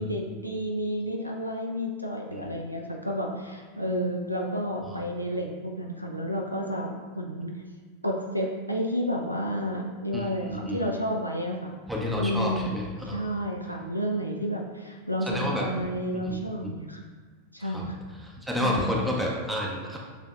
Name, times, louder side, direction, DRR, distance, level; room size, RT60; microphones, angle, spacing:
voice 1, 0.0-7.6 8.0-11.8 12.2-12.8 13.0-17.0 17.5-17.9 18.6-18.9, equal, 90° right, 1 dB, 0.3 m, -31 dB
voice 2, 10.1-10.8 11.9-13.2 15.3-15.6 16.3-16.4 17.7-17.8 18.5-20.0, left 1 dB, 5° right, -2 dB, 0.6 m, -30 dB
6.7 x 2.6 x 2.3 m, 1.4 s
figure-of-eight pair, 90°, 0 cm